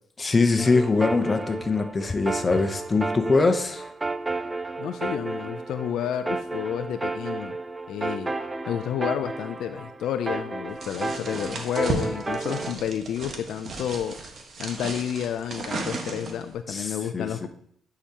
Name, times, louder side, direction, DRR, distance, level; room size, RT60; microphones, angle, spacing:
voice 1, 0.2-3.9 16.7-17.5, left 3 dB, 30° left, 7 dB, 0.8 m, -23 dB
sound 1, 0.6-12.7, right 3 dB, 20° right, 0.4 m, -32 dB
voice 2, 4.8-7.6 7.9-8.3 8.7-14.2 14.6-17.5, left 9 dB, 75° left, 10 dB, 0.4 m, -30 dB
sound 2, 10.8-16.5, right 3 dB, 50° right, 1.3 m, -34 dB
10.0 x 4.8 x 2.9 m, 0.65 s
cardioid pair, 85°, 0 cm